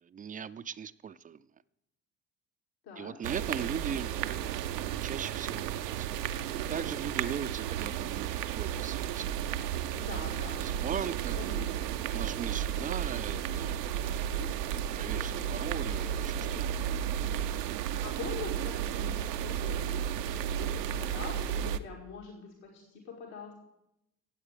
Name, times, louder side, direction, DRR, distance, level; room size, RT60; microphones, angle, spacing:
voice 1, 0.0-1.4 3.0-4.1 5.0-6.1 6.7-9.3 10.6-11.4 12.1-14.0 14.9-16.5, right 7 dB, 20° right, 15 dB, 0.3 m, -38 dB
voice 2, 2.8-3.2 9.9-11.7 14.0-14.6 18.0-19.9 20.3-23.5, left 5 dB, 70° left, -1 dB, 2.3 m, -44 dB
sound 1, 3.2-21.8, right 10 dB, 85° right, 0.6 m, -33 dB
16.5 x 8.0 x 5.0 m, 0.85 s
figure-of-eight pair, 50°, 47 cm